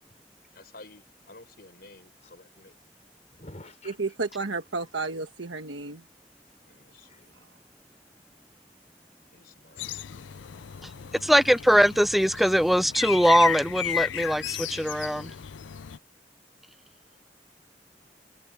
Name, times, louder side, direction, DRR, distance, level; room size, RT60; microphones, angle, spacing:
voice 1, 0.5-2.8 6.7-7.4 9.3-11.3, left 2 dB, 55° left, 5.7 m, -53 dB
voice 2, 3.3-4.0 6.4-7.3 16.7-18.5, left 1 dB, 40° left, 3.7 m, -52 dB
voice 3, 3.8-6.1 7.3-7.5, right 3 dB, 90° right, 1.3 m, -32 dB
sound 1, 9.8-16.0, left 9 dB, 85° left, 0.5 m, -35 dB
voice 4, 11.2-15.3, equal, ahead, 0.4 m, -21 dB
head